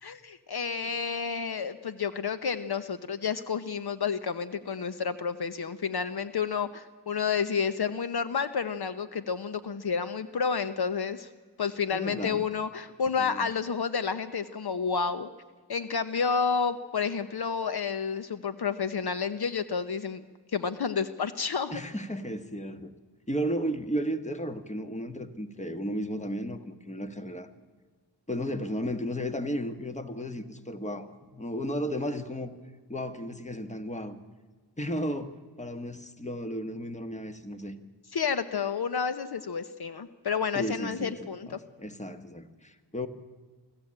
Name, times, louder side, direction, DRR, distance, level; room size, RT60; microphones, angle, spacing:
voice 1, 0.0-11.3 11.6-15.3 15.7-20.2 20.5-21.8 38.1-41.6, left 6 dB, 65° left, 11 dB, 1.0 m, -30 dB
voice 2, 11.9-12.4 13.2-13.4 21.7-22.9 23.3-27.5 28.3-32.5 32.9-34.2 34.8-37.8 40.5-43.1, equal, 15° left, 8 dB, 1.5 m, -34 dB
24.5 x 15.0 x 8.8 m, 1.4 s
wide cardioid pair, 85°, 41 cm